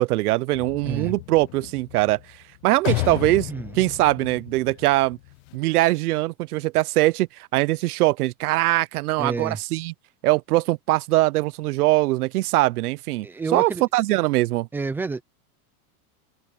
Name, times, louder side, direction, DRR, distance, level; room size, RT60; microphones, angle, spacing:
voice 1, 0.0-2.2 2.6-3.5 3.8-5.2 5.5-9.9 10.2-13.3 13.5-14.7, right 18 dB, 80° right, 0.7 m, -22 dB
sound 1, 0.5-5.6, left 22 dB, 45° left, 0.9 m, -33 dB
voice 2, 9.2-9.6 13.2-13.8 14.7-15.2, right 4 dB, 5° right, 0.4 m, -29 dB
supercardioid pair, 165°, 45 cm